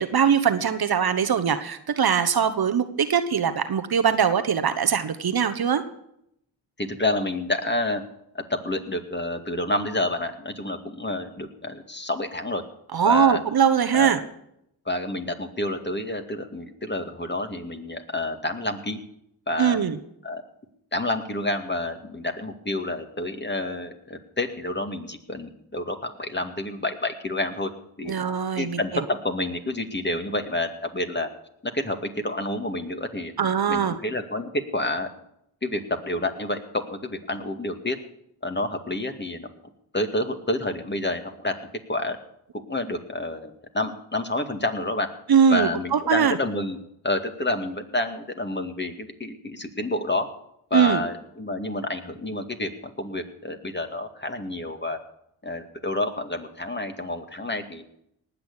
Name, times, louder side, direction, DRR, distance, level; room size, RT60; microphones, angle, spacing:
voice 1, 0.0-5.8 12.9-14.2 19.6-20.0 28.1-29.0 33.4-34.0 45.3-46.4 50.7-51.0, right 7 dB, 50° right, 9 dB, 1.2 m, -21 dB
voice 2, 6.8-8.0 8.3-12.6 13.0-13.4 13.9-14.1 14.9-19.0 19.5-19.8 20.2-20.4 20.9-27.7 28.0-28.2 28.5-31.3 31.7-33.3 33.7-35.1 35.6-38.0 38.4-39.5 39.9-41.6 41.9-42.2 42.7-45.1 45.5-46.8 47.0-50.3 50.7-55.0 55.4-57.8, left 1 dB, 20° left, 6 dB, 2.2 m, -29 dB
19.0 x 6.8 x 8.4 m, 0.77 s
hypercardioid pair, 40°, 47 cm